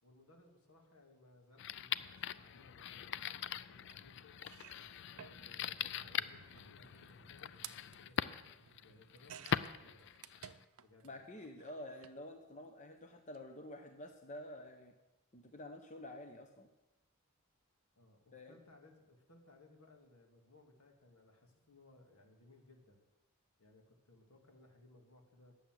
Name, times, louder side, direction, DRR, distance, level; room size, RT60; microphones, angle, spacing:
voice 1, 0.0-4.4 4.9-8.4 8.8-10.3 10.8-11.3 18.0-23.0 23.6-25.5, left 2 dB, 80° left, 1 dB, 2.2 m, -63 dB
sound 1, 1.6-10.6, left 9 dB, 55° left, 0.3 m, -42 dB
sound 2, 3.9-4.0 4.4-11.1 11.4-12.2 13.2-13.4 13.6-13.7, right 9 dB, 70° right, 0.5 m, -56 dB
voice 2, 11.0-14.9 15.3-16.7 18.3-18.6, left 1 dB, 35° left, 5 dB, 0.7 m, -49 dB
11.0 x 7.0 x 7.5 m, 1.0 s
head